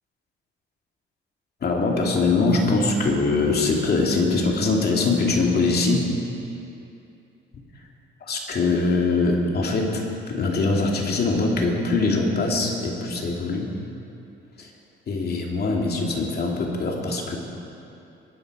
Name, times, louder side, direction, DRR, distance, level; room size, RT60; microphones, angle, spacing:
voice 1, 1.6-6.2 8.3-13.7 14.6-14.7 15.1-17.4, left 3 dB, 55° left, 0 dB, 2.6 m, -22 dB
22.5 x 10.5 x 4.9 m, 2.7 s
cardioid pair, 90°, 20 cm